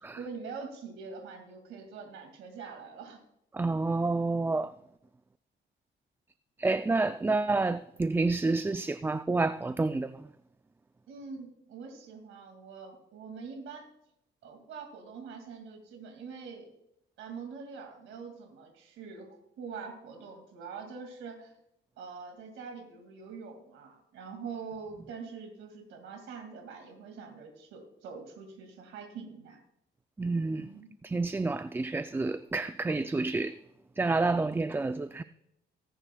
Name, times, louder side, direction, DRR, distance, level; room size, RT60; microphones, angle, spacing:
voice 1, 0.0-3.2 11.1-13.9 14.4-16.7 17.2-19.3 19.6-21.5 22.0-29.6 30.6-30.9, right 5 dB, 90° right, 2.2 m, -44 dB
voice 2, 3.5-4.7 6.6-10.3 30.2-30.7 31.0-33.6 34.0-35.2, right 3 dB, 10° right, 0.3 m, -29 dB
20.5 x 10.0 x 2.3 m
cardioid pair, 90°, 20 cm